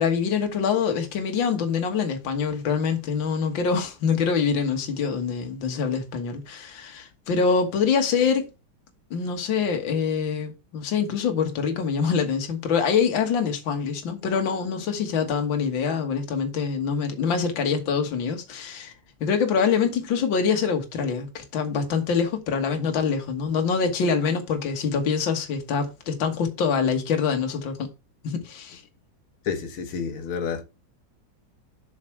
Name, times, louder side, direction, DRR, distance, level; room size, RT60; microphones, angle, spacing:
voice 1, 0.0-8.5 9.1-18.9 19.2-27.9 28.2-28.8, left 6 dB, 65° left, 2.1 m, -25 dB
voice 2, 29.5-30.6, left 6 dB, 85° left, 2.2 m, -29 dB
7.3 x 5.8 x 4.5 m
omnidirectional pair, 2.3 m